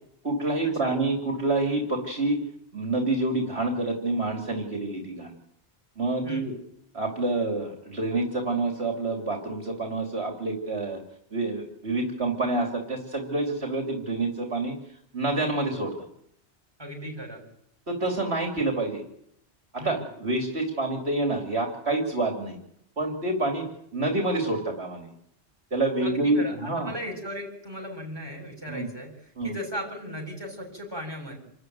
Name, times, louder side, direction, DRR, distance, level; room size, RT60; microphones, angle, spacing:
voice 1, 0.2-2.4 2.7-5.3 6.0-6.5 6.9-11.0 11.3-14.7 15.1-15.9 17.9-19.0 19.7-22.6 23.0-23.6 23.9-25.1 25.7-26.9 28.7-28.9 29.4-29.5, right 2 dB, 70° right, 2 dB, 3.3 m, -27 dB
voice 2, 16.8-17.4 19.8-20.0 26.0-31.4, equal, 20° right, 1 dB, 7.2 m, -37 dB
27.5 x 13.5 x 9.5 m, 0.73 s
omnidirectional pair, 1.1 m